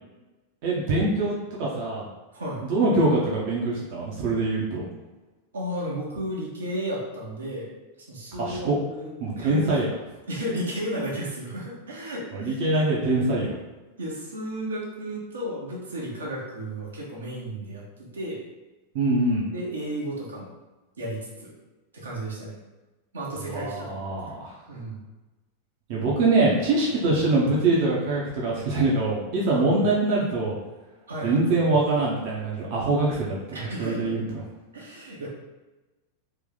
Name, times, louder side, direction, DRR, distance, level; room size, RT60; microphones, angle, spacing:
voice 1, 0.6-2.1 2.6-4.8 8.4-8.8 9.2-9.9 12.3-13.5 18.9-19.4 23.4-24.5 25.9-30.6 31.2-34.2, right 2 dB, 45° right, -5 dB, 0.9 m, -24 dB
voice 2, 2.3-2.6 5.5-7.7 8.1-9.8 10.3-12.7 14.0-18.4 19.5-20.5 21.0-21.5 21.9-22.6 23.1-24.4 24.7-25.0 29.5-29.9 31.1-31.8 33.5-34.1 34.7-35.3, right 1 dB, 70° right, -4 dB, 1.1 m, -33 dB
3.3 x 3.0 x 3.9 m, 1.1 s
figure-of-eight pair, 90°, 0 cm